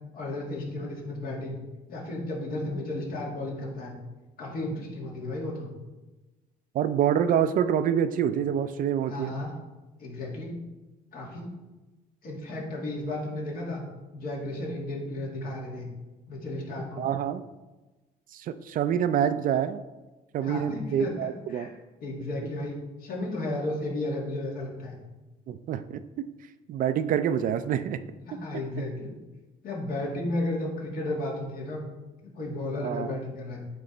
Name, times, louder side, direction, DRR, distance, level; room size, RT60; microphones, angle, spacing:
voice 1, 0.1-1.6 1.9-3.9 4.4-5.7 9.1-9.5 10.0-10.6 11.1-11.5 12.2-13.8 14.1-15.9 16.3-17.1 20.4-21.7 22.0-24.9 28.3-29.2 29.6-31.8 32.2-33.6, left 1 dB, 60° left, -3 dB, 2.1 m, -33 dB
voice 2, 6.7-9.3 17.0-17.4 18.3-19.8 20.3-21.7 25.5-26.0 26.7-28.0 32.8-33.1, right 9 dB, 55° right, 12 dB, 0.4 m, -26 dB
9.0 x 3.1 x 3.9 m, 1.1 s
cardioid pair, 110°, 17 cm